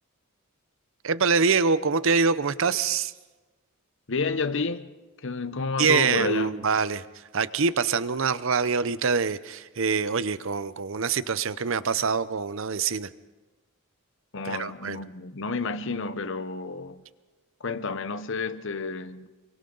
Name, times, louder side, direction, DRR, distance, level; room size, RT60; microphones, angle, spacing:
voice 1, 1.0-3.1 5.8-7.0 7.3-13.1 14.4-15.0, right 5 dB, 60° right, 0.6 m, -25 dB
voice 2, 4.1-4.9 5.2-6.7 14.3-17.0 17.6-19.3, left 4 dB, 55° left, 0.9 m, -30 dB
28.5 x 23.0 x 3.9 m
head